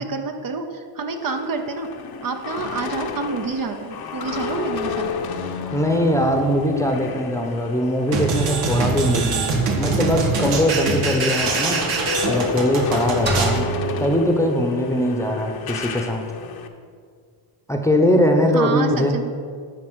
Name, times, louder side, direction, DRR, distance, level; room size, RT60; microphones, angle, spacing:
voice 1, 0.0-1.9 2.2-5.1 18.5-19.3, right 4 dB, 45° right, 5 dB, 0.8 m, -28 dB
sound 1, 1.1-9.5 9.8-16.7, left 5 dB, 50° left, 0.9 m, -30 dB
voice 2, 5.7-11.9 12.2-13.7 14.0-16.2 17.7-19.2, equal, 5° left, 3 dB, 0.9 m, -21 dB
sound 2, 8.1-13.6, right 3 dB, 85° right, 1.5 m, -23 dB
sound 3, 13.3-15.2, right 4 dB, 20° right, 1.3 m, -28 dB
9.8 x 4.3 x 6.3 m, 2.1 s
cardioid pair, 95°, 48 cm